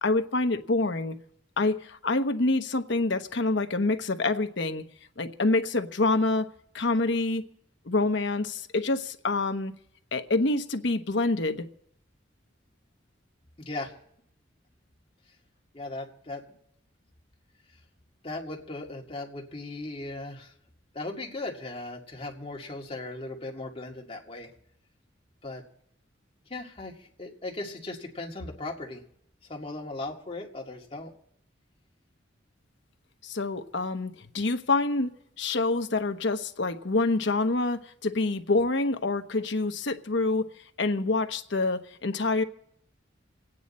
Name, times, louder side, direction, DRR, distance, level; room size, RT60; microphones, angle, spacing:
voice 1, 0.0-1.2 1.6-4.8 5.2-6.5 6.7-7.4 7.9-9.7 10.1-11.6 33.2-35.1 35.4-40.5 40.8-42.4, left 2 dB, 65° left, 1.0 m, -26 dB
voice 2, 13.6-13.9 15.7-16.4 18.2-20.5 20.9-24.5 25.4-25.6 26.5-29.0 29.5-31.1, left 2 dB, 30° left, 2.1 m, -37 dB
27.5 x 9.3 x 4.2 m
head